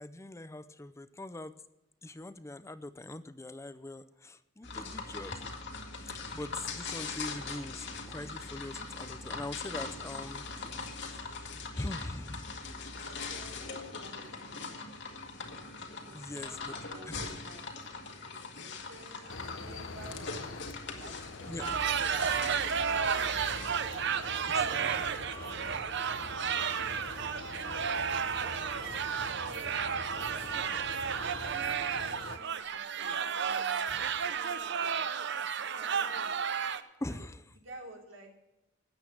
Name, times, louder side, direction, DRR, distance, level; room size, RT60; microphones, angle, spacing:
voice 1, 0.0-1.6 2.0-5.6 6.0-12.6 16.1-16.8 17.1-17.2 21.5-21.9 24.5-25.0 37.0-37.4, left 2 dB, 15° left, 13 dB, 0.5 m, -42 dB
sound 1, 4.6-23.8, left 4 dB, 65° left, 1.9 m, -41 dB
voice 2, 13.0-14.8 16.0-17.7 18.6-20.5 21.0-24.0 24.5-27.4 28.0-28.9 29.2-31.6 31.9-35.0 35.6-36.3 37.1-37.3 37.5-38.3, right 2 dB, 90° right, 1 dB, 3.2 m, -53 dB
sound 2, 19.3-32.4, left 3 dB, 85° left, 1.1 m, -45 dB
sound 3, 21.6-36.8, right 7 dB, 65° right, 0.8 m, -32 dB
13.0 x 8.9 x 6.1 m, 0.96 s
head